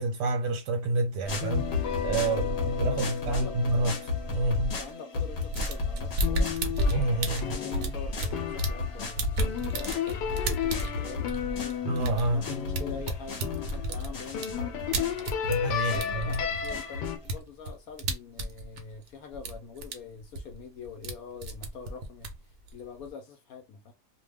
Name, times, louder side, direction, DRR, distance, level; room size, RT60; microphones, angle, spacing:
voice 1, 0.0-3.9 4.3-4.8 6.9-7.6 11.8-12.4 15.4-16.4, right 2 dB, 85° right, 1.3 m, -28 dB
sound 1, 1.2-17.4, left 3 dB, 45° left, 1.0 m, -35 dB
sound 2, 1.4-5.8 6.2-14.0 14.3-17.2, left 9 dB, 85° left, 1.2 m, -34 dB
voice 2, 2.2-3.0 3.3-3.7 4.8-6.6 7.1-15.3 15.9-23.9, left 5 dB, 70° left, 1.0 m, -44 dB
sound 3, 5.4-8.9 9.2-15.6 15.9-19.1 19.3-19.9 20.2-21.2 21.4-23.1, right 1 dB, 60° right, 0.7 m, -32 dB
2.7 x 2.2 x 3.3 m
omnidirectional pair, 1.8 m